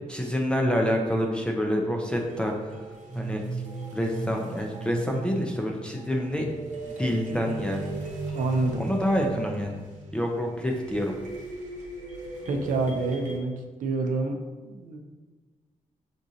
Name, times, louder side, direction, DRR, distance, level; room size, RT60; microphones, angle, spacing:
voice 1, 0.1-2.7 3.1-3.4 3.9-6.5 6.8-7.9 8.8-9.8 10.1-11.2, equal, 5° left, 0 dB, 0.4 m, -27 dB
sound 1, 2.1-13.4, right 2 dB, 60° right, 0.9 m, -38 dB
voice 2, 8.3-8.9 12.5-14.4 14.6-15.0, right 3 dB, 80° right, 3 dB, 0.6 m, -27 dB
6.0 x 2.5 x 2.7 m, 1.3 s
cardioid pair, 115°, 13 cm